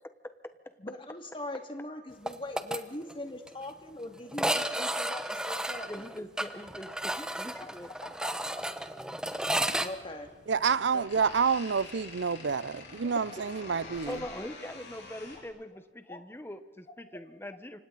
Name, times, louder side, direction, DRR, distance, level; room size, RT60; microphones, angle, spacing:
voice 1, 0.8-5.9 6.9-7.0 7.6-7.7 8.0-8.7 9.5-10.3 10.9-11.1 13.3-13.4 16.1-16.2, left 1 dB, 30° left, 2.4 m, -41 dB
sound 1, 2.3-2.8 3.1-3.2 3.5-3.6 4.3-9.9, right 1 dB, 5° right, 0.9 m, -32 dB
voice 2, 5.8-7.9 9.6-9.7 14.1-17.8, left 1 dB, 15° left, 1.2 m, -42 dB
sound 2, 9.3-15.5, left 3 dB, 70° left, 7.1 m, -47 dB
voice 3, 10.5-14.2, right 6 dB, 85° right, 0.6 m, -28 dB
28.5 x 25.5 x 4.1 m
head